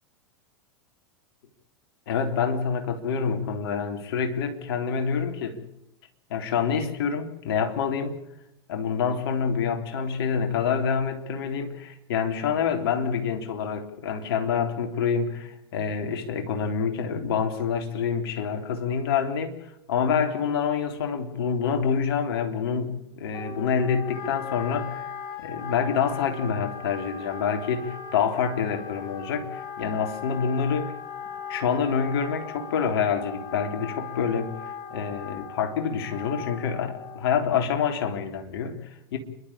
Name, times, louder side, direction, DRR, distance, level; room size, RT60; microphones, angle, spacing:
voice 1, 2.1-5.6 6.3-8.2 8.7-25.1 25.4-30.9 31.5-34.6 34.9-39.2, left 6 dB, 60° left, 5 dB, 3.8 m, -27 dB
Wind instrument woodwind instrument, 23.3-37.4, left 6 dB, 30° left, 4.0 m, -38 dB
29.0 x 12.5 x 8.7 m, 0.81 s
hypercardioid pair, 90°, 14 cm